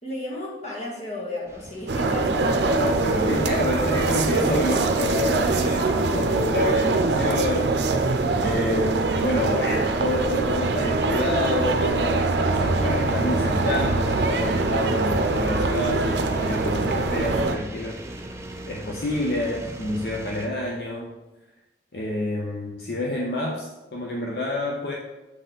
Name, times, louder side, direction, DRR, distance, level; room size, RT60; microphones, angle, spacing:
voice 1, 0.0-2.8, left 1 dB, 40° left, -4 dB, 1.7 m, -34 dB
sound 1, 1.5-20.5, right 1 dB, 15° right, 0.5 m, -41 dB
sound 2, 1.9-17.6, right 3 dB, 80° right, 0.6 m, -23 dB
voice 2, 2.7-7.7 8.4-18.0 18.7-21.2 21.9-24.9, left 1 dB, 60° left, -2 dB, 0.7 m, -28 dB
7.6 x 4.2 x 3.9 m, 1.1 s
head